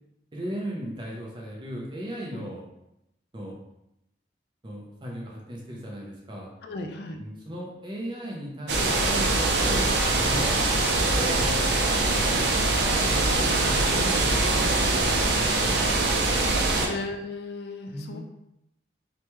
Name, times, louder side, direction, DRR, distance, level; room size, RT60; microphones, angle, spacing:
voice 1, 0.3-2.6 3.3-3.6 4.6-6.5 7.2-9.8 10.2-10.6 11.1-16.5 17.9-18.2, equal, 25° right, -3 dB, 0.6 m, -37 dB
voice 2, 6.6-7.2 9.7-9.9 13.9-14.3 16.9-18.2, left 2 dB, 60° left, 4 dB, 0.3 m, -35 dB
sound 1, 8.7-16.9, right 2 dB, 75° right, 0.5 m, -23 dB
3.0 x 2.2 x 2.9 m, 0.84 s
head